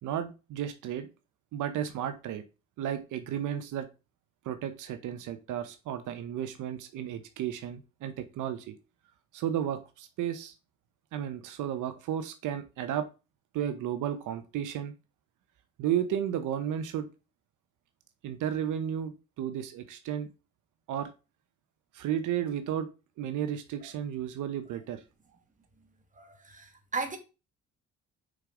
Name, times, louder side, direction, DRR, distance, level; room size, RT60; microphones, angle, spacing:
voice 1, 0.0-1.1 1.5-2.4 2.8-3.9 4.4-8.7 9.3-10.5 11.1-13.1 13.5-14.9 15.8-17.1 18.2-20.3 20.9-21.1 21.9-22.9 23.2-25.0, right 10 dB, 85° right, 0.9 m, -33 dB
voice 2, 26.2-27.2, right 4 dB, 25° right, 1.8 m, -36 dB
6.4 x 5.1 x 3.8 m
cardioid pair, 90°, 30 cm